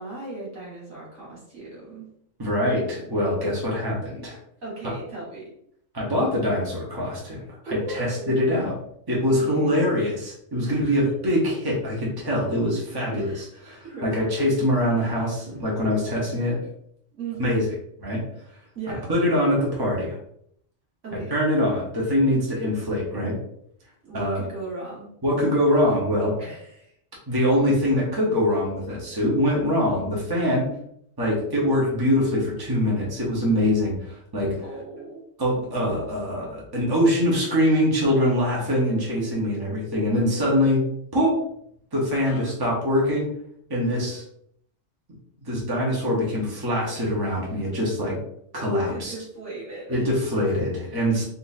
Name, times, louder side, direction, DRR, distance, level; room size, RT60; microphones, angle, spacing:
voice 1, 0.0-2.0 4.6-5.5 7.7-8.3 9.4-9.9 10.6-11.1 13.1-14.2 15.0-15.2 17.1-17.6 18.8-19.1 21.0-21.3 23.8-25.1 26.4-26.9 34.6-35.2 42.2-42.5 48.8-50.2, right 3 dB, 85° right, -5 dB, 2.0 m, -37 dB
voice 2, 2.4-4.4 5.9-8.7 9.1-16.6 17.4-17.6 18.0-18.2 19.1-20.2 21.1-23.4 24.1-24.4 25.2-26.4 27.3-30.7 31.2-34.6 35.4-41.4 41.9-43.3 43.7-44.2 45.4-48.2 48.5-49.1 49.9-51.2, left 1 dB, 20° right, -4 dB, 1.0 m, -23 dB
4.1 x 2.8 x 2.7 m, 0.70 s
omnidirectional pair, 1.3 m